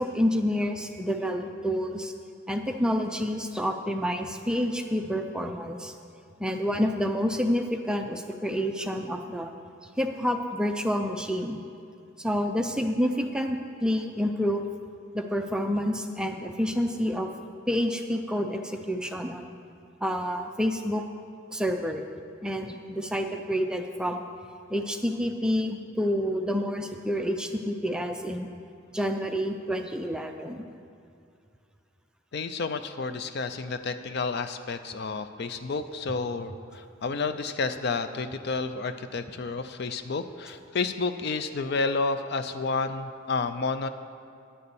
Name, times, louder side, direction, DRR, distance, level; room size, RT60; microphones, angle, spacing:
voice 1, 0.0-2.1 2.5-5.9 6.4-9.5 10.0-11.6 12.2-14.7 15.1-17.3 17.7-19.5 20.0-21.0 21.5-22.0 22.4-24.2 24.7-28.5 28.9-30.6, equal, 5° right, 4 dB, 0.4 m, -28 dB
voice 2, 32.3-43.9, left 4 dB, 55° left, 10 dB, 0.4 m, -30 dB
10.5 x 6.7 x 7.0 m, 2.5 s
head